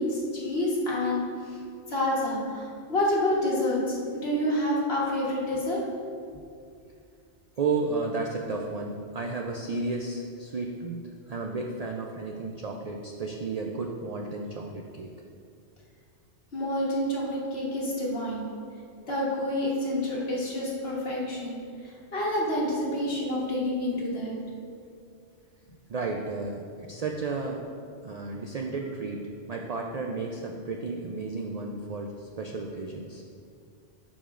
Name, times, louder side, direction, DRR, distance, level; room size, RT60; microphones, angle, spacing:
voice 1, 0.0-1.6 1.9-5.8 16.5-18.5 19.1-24.4, left 1 dB, 60° left, -5 dB, 1.6 m, -28 dB
voice 2, 7.6-11.0 11.3-15.1 25.9-27.6 28.0-33.2, right 3 dB, 60° right, 1 dB, 0.4 m, -33 dB
12.0 x 5.0 x 2.5 m, 2.4 s
omnidirectional pair, 1.2 m